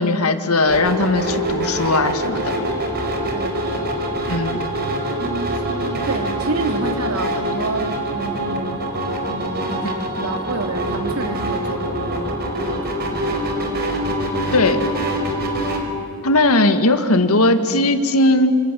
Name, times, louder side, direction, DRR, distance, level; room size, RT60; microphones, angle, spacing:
voice 1, 0.0-2.7 4.3-4.6 9.8-9.9 14.5-14.8 16.2-18.6, left 2 dB, 85° left, 8 dB, 2.0 m, -18 dB
sound 1, 0.7-15.8, right 1 dB, 45° right, 4.9 m, -24 dB
voice 2, 3.3-3.9 5.2-8.8 9.2-12.3 12.7-13.2, right 2 dB, 85° right, 6 dB, 2.6 m, -29 dB
27.5 x 27.0 x 7.7 m, 2.5 s
head